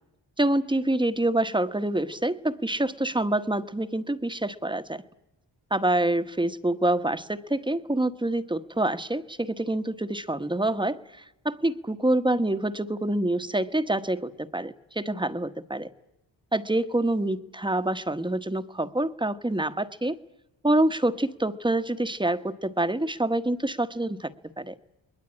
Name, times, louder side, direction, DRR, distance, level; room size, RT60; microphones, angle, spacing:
voice 1, 0.4-5.0 5.7-15.9 16.5-20.2 20.6-24.7, right 1 dB, 10° right, 9 dB, 1.2 m, -26 dB
29.0 x 21.0 x 8.8 m, 0.91 s
cardioid pair, 80°, 45 cm